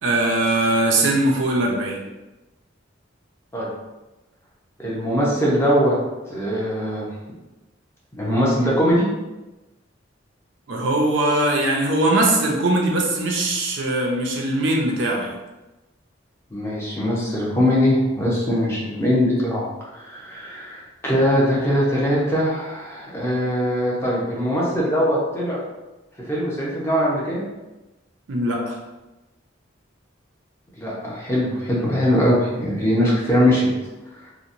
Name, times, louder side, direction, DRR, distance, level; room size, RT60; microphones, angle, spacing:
voice 1, 0.0-2.0 10.7-15.3 28.3-28.8, right 1 dB, 65° right, 0 dB, 0.5 m, -21 dB
voice 2, 4.8-5.9 6.3-7.0 8.1-9.1 16.5-19.6 19.9-25.6 26.3-27.4 30.8-33.7, equal, 15° left, -6 dB, 0.6 m, -21 dB
2.8 x 2.1 x 2.5 m, 1.1 s
head